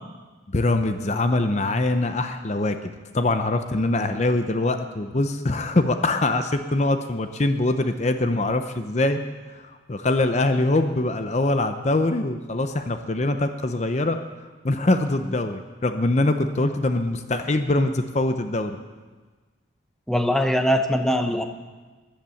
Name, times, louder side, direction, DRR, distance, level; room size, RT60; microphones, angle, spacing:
voice 1, 0.5-9.2 9.5-14.2 14.6-18.8, left 2 dB, 35° left, 8 dB, 0.7 m, -23 dB
voice 2, 20.1-21.5, equal, ahead, 6 dB, 0.8 m, -21 dB
15.0 x 10.5 x 7.0 m, 1.3 s
head